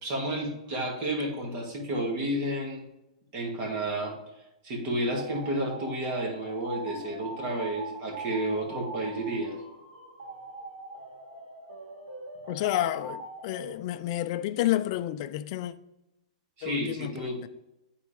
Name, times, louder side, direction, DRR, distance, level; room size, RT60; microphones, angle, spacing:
voice 1, 0.0-2.8 3.3-4.2 4.6-9.6 16.6-17.5, right 1 dB, 40° right, 2.2 m, -31 dB
sound 1, 5.1-13.7, right 2 dB, 80° right, 2.2 m, -42 dB
voice 2, 12.5-15.7 16.6-17.5, left 13 dB, 45° left, 0.4 m, -30 dB
9.3 x 4.2 x 3.4 m
hypercardioid pair, 140°, 4 cm